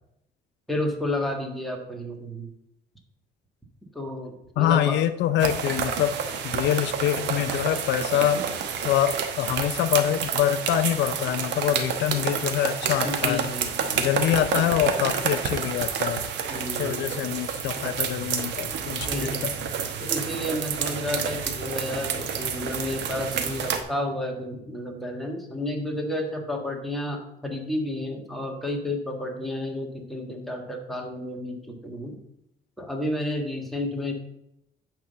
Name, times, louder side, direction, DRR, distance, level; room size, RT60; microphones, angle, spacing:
voice 1, 0.7-2.5 3.9-5.0 13.0-14.0 16.5-17.2 19.1-19.5 20.0-32.2 32.8-34.1, left 1 dB, ahead, 0 dB, 1.5 m, -31 dB
voice 2, 4.6-6.1 6.4-8.4 8.8-13.4 14.0-16.2 16.8-19.5, left 11 dB, 75° left, 11 dB, 0.6 m, -25 dB
sound 1, 5.4-23.8, right 7 dB, 75° right, 1.1 m, -29 dB
9.0 x 3.7 x 6.7 m, 0.81 s
cardioid pair, 125°, 18 cm